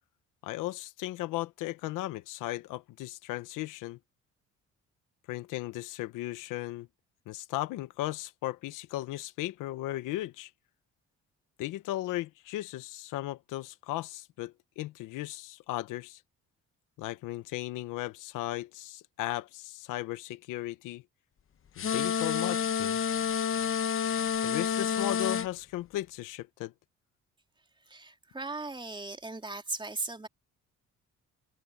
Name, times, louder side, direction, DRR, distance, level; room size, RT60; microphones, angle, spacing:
voice 1, 0.4-4.0 5.3-6.9 7.3-10.5 11.6-16.2 17.0-21.0 21.8-23.0 24.4-26.7, left 16 dB, 90° left, 1.2 m, -36 dB
sound 1, 21.8-25.5, left 7 dB, 45° left, 1.1 m, -29 dB
voice 2, 27.8-30.3, right 2 dB, 15° right, 3.6 m, -38 dB
cardioid pair, 90°, 31 cm